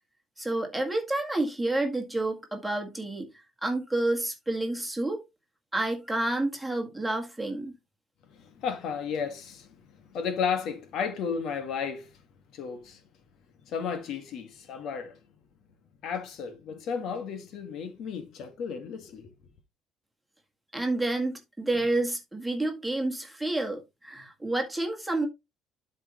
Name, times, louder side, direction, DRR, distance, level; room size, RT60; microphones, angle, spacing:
voice 1, 0.4-3.3 3.6-5.2 5.7-7.7 20.7-25.3, right 2 dB, 5° right, 1.9 m, -29 dB
voice 2, 8.3-12.2 12.5-13.0 13.6-15.2 16.0-19.3, left 6 dB, 55° left, 1.6 m, -33 dB
12.0 x 4.7 x 3.0 m
cardioid pair, 170°, 0 cm